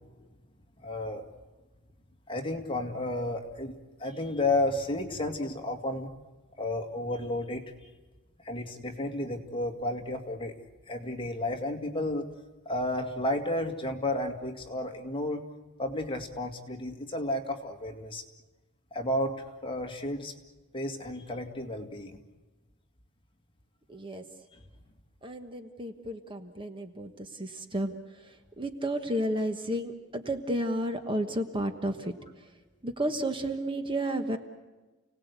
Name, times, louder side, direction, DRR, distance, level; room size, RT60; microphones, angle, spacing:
voice 1, 0.8-1.2 2.3-6.1 6.6-7.6 8.4-10.5 10.9-12.3 12.7-15.4 15.8-18.2 18.9-20.3 20.7-22.2, left 1 dB, 25° left, 3 dB, 2.2 m, -32 dB
voice 2, 23.9-24.2 25.2-32.1 32.8-34.4, right 1 dB, 25° right, 6 dB, 1.3 m, -32 dB
30.0 x 18.5 x 8.2 m, 1.2 s
head